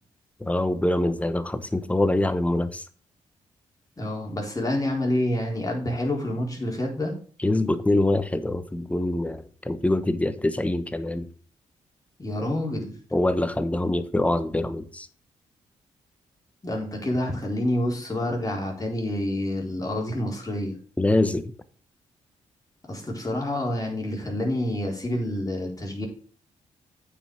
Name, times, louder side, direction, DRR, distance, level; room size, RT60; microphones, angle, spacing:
voice 1, 0.4-2.9 7.4-11.3 13.1-15.1 21.0-21.4, left 1 dB, 10° left, 1.0 m, -24 dB
voice 2, 4.0-7.1 12.2-12.9 16.6-20.8 22.9-26.1, left 1 dB, 25° left, 4.2 m, -28 dB
8.7 x 5.4 x 6.2 m
hypercardioid pair, 45°, 14 cm